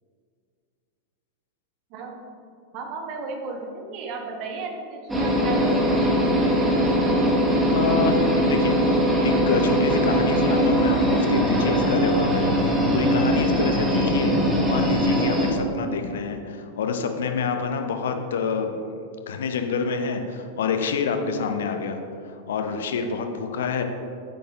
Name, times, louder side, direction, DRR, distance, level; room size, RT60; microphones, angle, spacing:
voice 1, 1.9-2.3 2.7-6.0, right 4 dB, 40° right, 2 dB, 1.0 m, -34 dB
sound 1, 5.1-15.5, equal, 10° right, 1.4 m, -21 dB
voice 2, 7.7-8.8 9.2-18.8 19.3-22.0 22.5-23.8, left 5 dB, 60° left, 6 dB, 0.6 m, -27 dB
8.4 x 4.2 x 4.7 m, 2.4 s
figure-of-eight pair, 90°, 0 cm